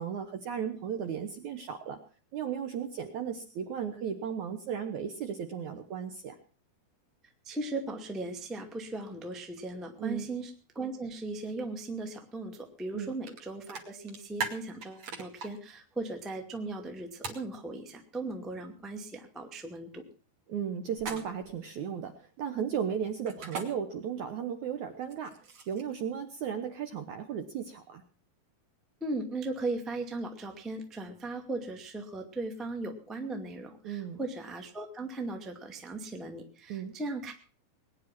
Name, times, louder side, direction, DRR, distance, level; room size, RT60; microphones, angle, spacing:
voice 1, 0.0-2.0 2.3-6.4 10.0-10.3 12.9-13.2 20.5-22.1 22.4-25.3 25.7-28.0 33.8-34.2 36.7-36.9, right 8 dB, 70° right, 7 dB, 1.8 m, -35 dB
voice 2, 7.4-20.0 29.0-37.3, right 2 dB, ahead, 3 dB, 0.4 m, -38 dB
sound 1, 13.3-13.4 13.7-15.5 17.2-17.4 21.0-21.5 23.3-23.7 25.0-25.9, right 4 dB, 45° right, 3.0 m, -38 dB
20.5 x 10.0 x 6.0 m, 0.39 s
omnidirectional pair, 4.9 m